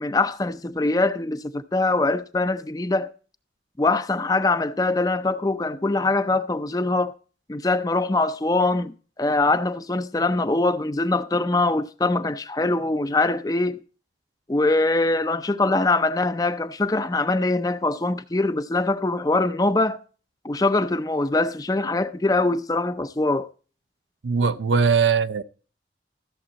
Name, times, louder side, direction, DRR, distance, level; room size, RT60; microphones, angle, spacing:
voice 1, 0.0-3.1 3.8-7.1 7.5-13.8 14.5-20.0 20.4-23.5, left 2 dB, 20° left, 0.5 m, -23 dB
voice 2, 24.2-25.4, right 5 dB, 85° right, 0.6 m, -20 dB
14.0 x 7.2 x 4.0 m
head